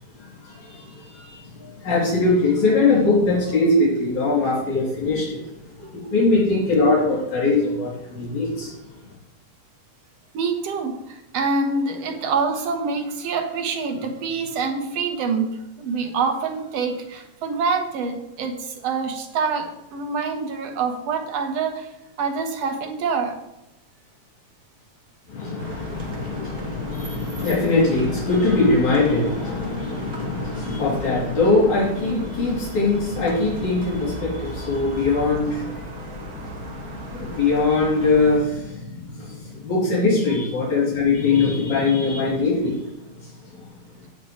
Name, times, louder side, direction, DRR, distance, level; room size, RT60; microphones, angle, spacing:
voice 1, 0.5-5.4 5.9-8.7 25.3-42.9, left 3 dB, 75° left, -7 dB, 4.4 m, -22 dB
voice 2, 10.3-21.9 22.2-23.4, right 4 dB, 65° right, 4 dB, 2.2 m, -26 dB
sound 1, 25.6-38.4, right 1 dB, 45° right, 1.3 m, -37 dB
17.5 x 6.1 x 3.2 m, 0.89 s
omnidirectional pair, 3.3 m